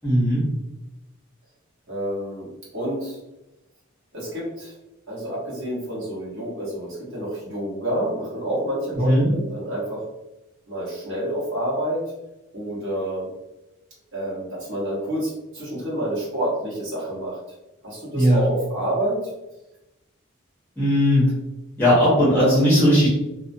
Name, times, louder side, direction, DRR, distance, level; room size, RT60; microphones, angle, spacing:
voice 1, 0.0-0.4 9.0-9.3 18.1-18.4 20.8-21.3 21.8-23.1, equal, 10° left, -9 dB, 0.6 m, -17 dB
voice 2, 1.9-2.5 2.7-3.2 4.1-4.8 5.1-10.0 10.7-12.1 12.5-13.3 14.1-17.4 17.8-19.3, right 1 dB, 55° right, -7 dB, 1.1 m, -28 dB
2.3 x 2.1 x 2.5 m, 0.95 s
head